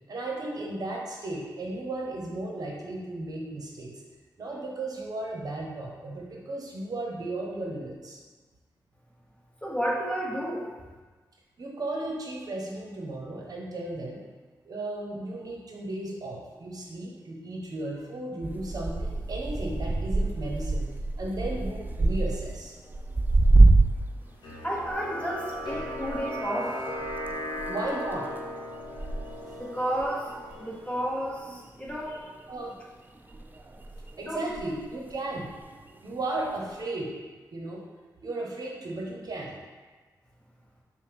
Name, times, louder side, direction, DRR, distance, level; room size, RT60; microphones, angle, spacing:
voice 1, 0.1-3.9 4.4-8.2 11.6-14.2 14.6-20.9 21.2-22.7 27.7-28.3 32.5-32.7 34.2-35.5 36.0-37.1 37.5-37.8 38.2-39.6, right 2 dB, 55° right, -1 dB, 0.8 m, -35 dB
voice 2, 9.6-10.7 24.6-26.8 29.6-30.3 30.6-32.3 34.3-34.4, equal, 15° left, -3 dB, 1.0 m, -31 dB
sound 1, 18.4-24.2 24.5-31.6 31.9-32.6 33.3-35.2 35.6-36.0 36.7-36.8, right 2 dB, 25° right, 0.4 m, -26 dB
sound 2, 24.4-31.3, left 1 dB, 75° left, 0.8 m, -37 dB
5.3 x 2.2 x 3.4 m, 1.4 s
cardioid pair, 50°, 8 cm